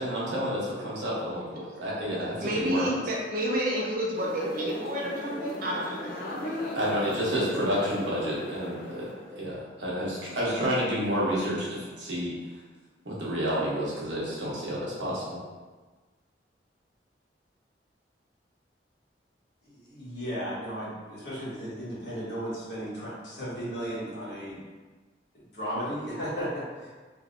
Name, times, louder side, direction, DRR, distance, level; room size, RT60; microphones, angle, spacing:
voice 1, 0.0-3.0 6.7-12.3 13.0-15.4, equal, 90° right, -7 dB, 1.1 m, -30 dB
voice 2, 2.4-6.8, equal, 50° right, -3 dB, 0.7 m, -30 dB
sound 1, 4.1-9.6, left 1 dB, 50° left, 0.6 m, -37 dB
voice 3, 19.6-24.6 25.5-26.9, equal, 70° left, -9 dB, 1.4 m, -35 dB
3.4 x 2.8 x 2.5 m, 1.3 s
head